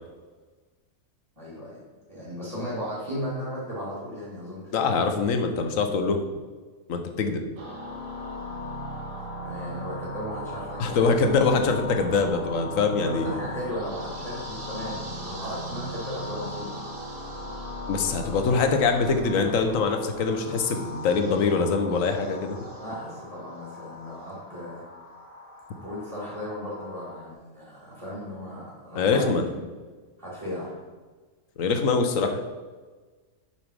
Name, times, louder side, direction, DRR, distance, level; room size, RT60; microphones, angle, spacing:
voice 1, 1.4-4.7 9.4-11.2 13.0-16.8 22.8-24.8 25.8-29.6 30.2-30.8, equal, 15° right, -8 dB, 2.3 m, -36 dB
voice 2, 4.7-6.2 6.9-7.4 10.8-13.4 17.9-22.6 28.9-29.4 31.6-32.4, left 4 dB, 70° left, 6 dB, 1.2 m, -23 dB
sound 1, 7.6-27.3, left 1 dB, 65° right, 1.5 m, -38 dB
7.1 x 5.6 x 4.8 m, 1.4 s
omnidirectional pair, 1.5 m